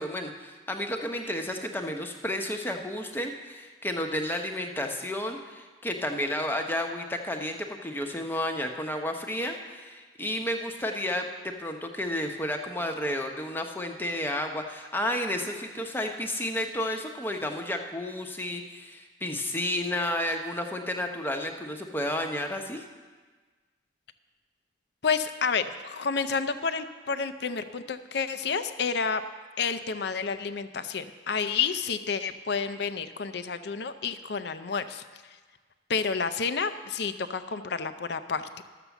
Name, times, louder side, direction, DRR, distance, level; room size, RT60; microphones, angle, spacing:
voice 1, 0.0-22.8, left 1 dB, 10° left, 4 dB, 0.8 m, -32 dB
voice 2, 25.0-29.2 29.6-35.4 35.9-38.5, left 5 dB, 60° left, 11 dB, 0.5 m, -30 dB
12.5 x 6.8 x 7.1 m, 1.4 s
head